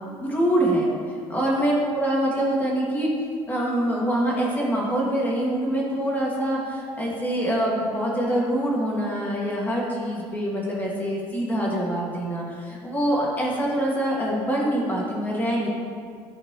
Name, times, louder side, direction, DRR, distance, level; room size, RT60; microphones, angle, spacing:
voice 1, 0.1-0.9 1.3-3.1 3.5-15.7, right 1 dB, 15° left, -4 dB, 1.8 m, -25 dB
12.5 x 4.5 x 3.0 m, 2.1 s
cardioid pair, 140°, 10 cm